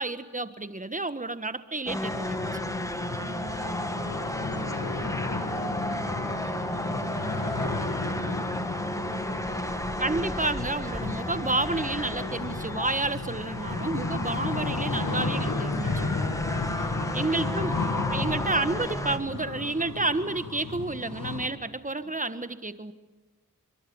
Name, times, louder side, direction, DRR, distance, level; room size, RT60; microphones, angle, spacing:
voice 1, 0.0-2.6 10.0-16.2 17.1-17.7 18.1-22.9, right 2 dB, 20° right, 12 dB, 1.5 m, -30 dB
sound 1, 1.9-19.2, left 1 dB, 10° left, 1.7 m, -33 dB
sound 2, 2.0-21.5, left 3 dB, 65° left, 2.3 m, -34 dB
voice 2, 3.0-10.3 16.3-17.2 17.5-18.3 22.0-22.1, right 3 dB, 60° right, 2 dB, 3.0 m, -47 dB
24.5 x 22.5 x 7.2 m, 1.2 s
cardioid pair, 45°, 35 cm